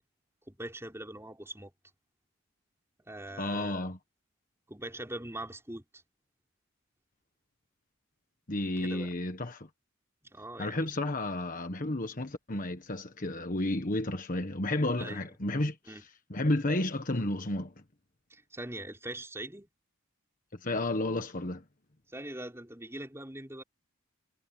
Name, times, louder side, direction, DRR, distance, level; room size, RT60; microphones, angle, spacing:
voice 1, 0.5-1.7 3.1-3.9 4.7-5.8 8.8-9.1 10.3-10.9 15.0-15.2 15.9-16.0 18.3-19.7 22.1-23.6, right 1 dB, 10° right, 5.5 m, -42 dB
voice 2, 3.4-4.0 8.5-9.7 10.6-17.7 20.6-21.6, left 1 dB, 40° left, 1.4 m, -32 dB
head